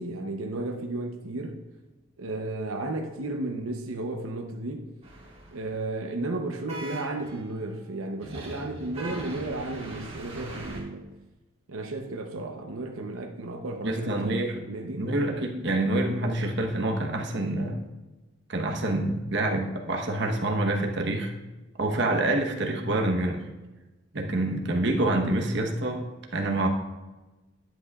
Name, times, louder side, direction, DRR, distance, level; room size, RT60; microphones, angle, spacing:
voice 1, 0.0-1.6 2.2-4.9 5.5-11.1 11.7-15.1, right 2 dB, 90° right, 3 dB, 0.7 m, -33 dB
sound 1, 5.0-5.7 6.7-7.6 8.2-10.8, right 2 dB, 30° right, 2.5 m, -40 dB
voice 2, 13.8-17.8 18.5-21.3 21.8-23.4 24.1-26.0 26.3-26.7, right 2 dB, 55° right, 2 dB, 1.0 m, -27 dB
11.5 x 8.0 x 2.3 m, 1.1 s
head